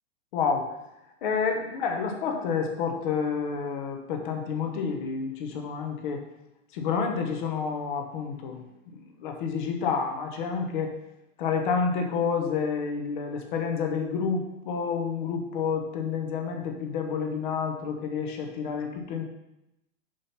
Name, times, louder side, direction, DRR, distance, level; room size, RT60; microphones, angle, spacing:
voice 1, 0.3-0.7 1.2-6.2 6.7-10.9 11.4-19.2, left 5 dB, 40° left, 4 dB, 1.0 m, -29 dB
5.8 x 5.1 x 5.6 m, 0.88 s
supercardioid pair, 175°, 39 cm